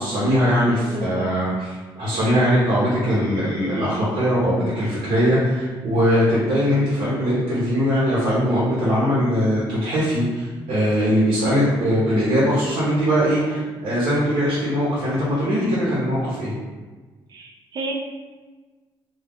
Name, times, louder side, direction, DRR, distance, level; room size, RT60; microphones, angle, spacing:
voice 1, 0.0-1.7 1.9-16.5, equal, 85° right, -8 dB, 0.8 m, -21 dB
voice 2, 0.8-1.4 2.1-2.4 17.3-17.9, right 2 dB, 45° right, 1 dB, 0.4 m, -32 dB
2.3 x 2.1 x 3.4 m, 1.3 s
cardioid pair, 155°, 9 cm